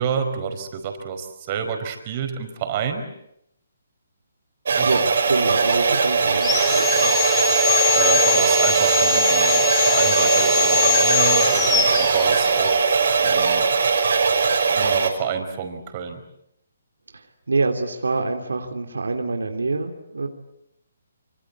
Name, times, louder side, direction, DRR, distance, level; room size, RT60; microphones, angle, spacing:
voice 1, 0.0-3.1 4.7-4.9 7.9-12.8 13.2-13.7 14.7-16.2, right 7 dB, 35° right, 7 dB, 4.9 m, -28 dB
sound 1, 4.6-15.1, right 5 dB, 70° right, 5.1 m, -20 dB
voice 2, 4.8-7.1 17.1-20.3, right 3 dB, 85° right, 5 dB, 3.2 m, -26 dB
Sawing, 6.3-12.8, left 6 dB, 10° left, 4.4 m, -22 dB
26.0 x 25.5 x 8.5 m, 0.80 s
hypercardioid pair, 145°, 0 cm